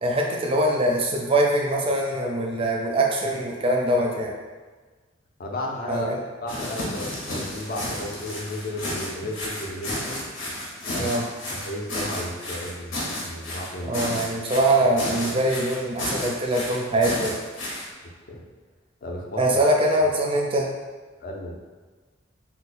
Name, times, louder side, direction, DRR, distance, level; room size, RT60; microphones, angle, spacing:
voice 1, 0.0-4.3 5.9-6.2 11.0-11.2 13.8-17.4 19.4-20.7, right 1 dB, 30° right, 0 dB, 0.4 m, -23 dB
voice 2, 5.4-6.1 6.4-10.2 10.8-11.1 11.5-12.9 13.2-14.0 18.3-18.4 19.0-19.6 21.2-21.6, left 1 dB, 45° left, 0 dB, 0.5 m, -33 dB
sound 1, 6.5-17.9, left 1 dB, 90° left, 0.9 m, -32 dB
2.8 x 2.1 x 4.0 m, 1.4 s
head